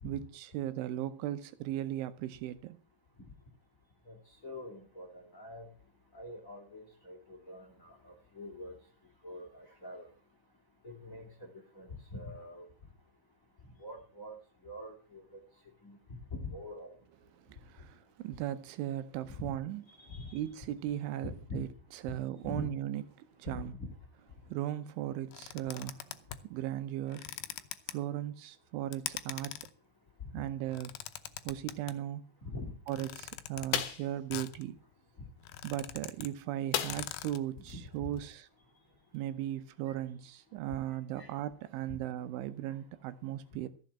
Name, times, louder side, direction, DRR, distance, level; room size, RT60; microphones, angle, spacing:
voice 1, 0.0-2.8 17.5-19.8 20.3-21.7 22.0-23.7 24.5-26.1 26.4-27.3 27.9-29.6 30.3-31.0 31.5-32.2 32.9-34.8 35.6-38.5 39.1-43.7, right 12 dB, 85° right, 3.3 m, -37 dB
voice 2, 4.4-5.7 6.1-8.7 9.2-10.1 10.8-11.5 11.7-12.7 13.8-14.4 14.6-15.4 15.8-16.0 16.3-16.9 19.3-19.5 19.9-20.4 21.2-21.6 22.1-22.2 22.4-22.7 23.5-23.9 32.4-32.7 37.7-38.1 39.9-40.0 41.2-41.3, left 1 dB, 25° left, 2.0 m, -44 dB
sound 1, 25.3-26.5 27.1-27.9 28.9-29.7 30.6-31.9 32.9-33.7 34.3-34.6 35.0-35.1 35.3-36.3 36.6-36.7 36.9-37.4, left 13 dB, 90° left, 2.2 m, -42 dB
sound 2, 33.7-34.1 36.7-37.3 37.7-37.8 38.2-38.3, left 10 dB, 65° left, 2.6 m, -33 dB
14.5 x 7.1 x 7.5 m
omnidirectional pair, 5.5 m